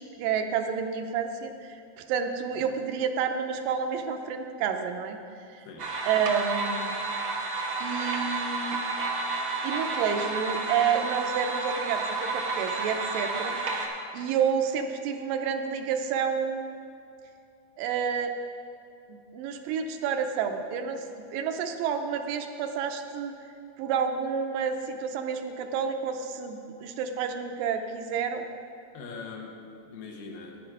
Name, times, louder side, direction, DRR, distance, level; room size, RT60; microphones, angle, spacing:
voice 1, 0.0-1.8 2.1-5.2 5.5-5.6 6.1-7.0 7.8-8.8 9.6-13.6 14.1-16.8 17.8-18.3 19.1-23.3 23.8-28.5, right 7 dB, 90° right, 5 dB, 2.3 m, -29 dB
sound 1, 5.8-13.9, right 3 dB, 65° right, 1.2 m, -31 dB
voice 2, 28.9-30.6, left 4 dB, 75° left, 1 dB, 2.7 m, -42 dB
10.0 x 9.8 x 4.9 m, 2.5 s
omnidirectional pair, 4.0 m